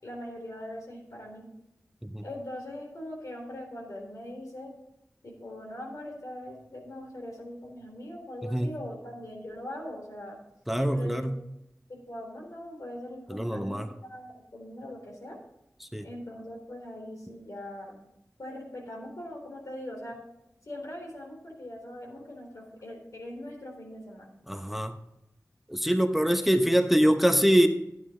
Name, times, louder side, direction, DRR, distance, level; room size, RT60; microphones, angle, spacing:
voice 1, 0.0-1.5 2.2-4.7 5.2-10.4 10.9-11.3 11.9-15.4 16.0-18.0 18.4-20.2 20.7-24.3, left 1 dB, 85° left, -1 dB, 3.9 m, -41 dB
voice 2, 10.7-11.4 13.3-13.9 15.9-16.1 24.5-24.9 25.7-27.7, equal, 5° right, 6 dB, 0.9 m, -24 dB
12.5 x 9.4 x 3.8 m, 0.85 s
wide cardioid pair, 55°, 6 cm